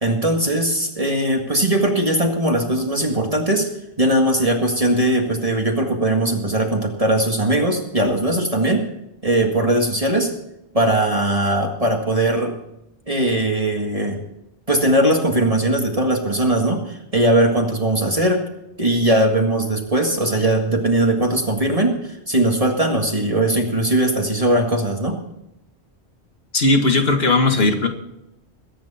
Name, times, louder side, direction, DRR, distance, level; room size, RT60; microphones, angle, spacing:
voice 1, 0.0-3.7 4.0-8.9 9.2-10.3 10.7-12.6 13.1-14.2 14.7-18.5 18.8-25.2, right 1 dB, 35° right, 1 dB, 2.0 m, -19 dB
voice 2, 26.5-27.9, left 2 dB, 65° left, 5 dB, 2.1 m, -17 dB
22.0 x 9.5 x 4.3 m, 0.85 s
omnidirectional pair, 1.1 m